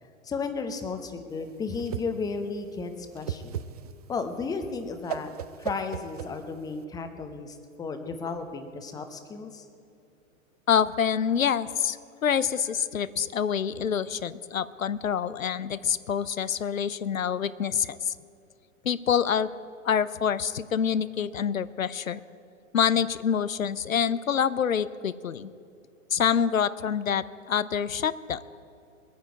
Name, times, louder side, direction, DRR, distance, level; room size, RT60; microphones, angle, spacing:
voice 1, 0.2-3.6 4.1-5.3 5.6-9.7, left 4 dB, 10° left, 7 dB, 0.8 m, -34 dB
Whoosh swoosh swish, 1.3-6.8, right 9 dB, 30° right, 0.4 m, -37 dB
voice 2, 10.7-18.1 18.8-19.5 19.8-22.2 22.7-25.5 26.1-28.4, left 8 dB, 75° left, 16 dB, 0.7 m, -26 dB
22.0 x 9.6 x 4.7 m, 2.6 s
figure-of-eight pair, 110°, 40 cm